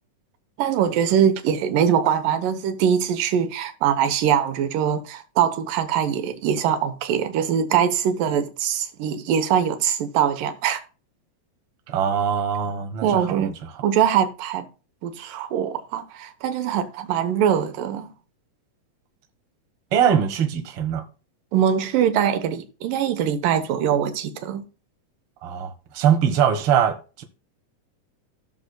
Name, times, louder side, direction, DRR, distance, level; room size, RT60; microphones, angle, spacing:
voice 1, 0.6-10.8 13.0-13.6 13.8-14.7 15.0-18.1 21.5-24.6, right 9 dB, 90° right, 2.7 m, -22 dB
voice 2, 11.9-13.5 19.9-21.0 25.4-27.2, right 8 dB, 55° right, 1.9 m, -22 dB
16.5 x 6.5 x 2.2 m
omnidirectional pair, 3.7 m